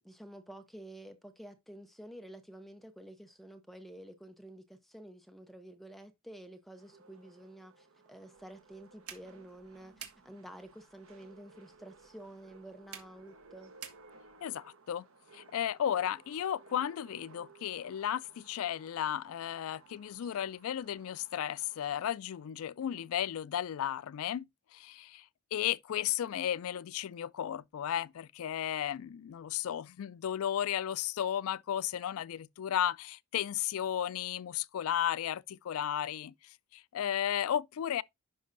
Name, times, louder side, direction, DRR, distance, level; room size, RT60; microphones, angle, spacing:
voice 1, 0.0-13.7, right 1 dB, ahead, 0.6 m, -50 dB
sound 1, 6.8-22.1, right 4 dB, 65° right, 1.0 m, -59 dB
sound 2, 8.3-14.5, right 8 dB, 90° right, 1.5 m, -53 dB
voice 2, 14.4-15.1 15.3-25.3 25.5-38.0, left 10 dB, 75° left, 0.3 m, -34 dB
10.5 x 5.3 x 2.5 m
head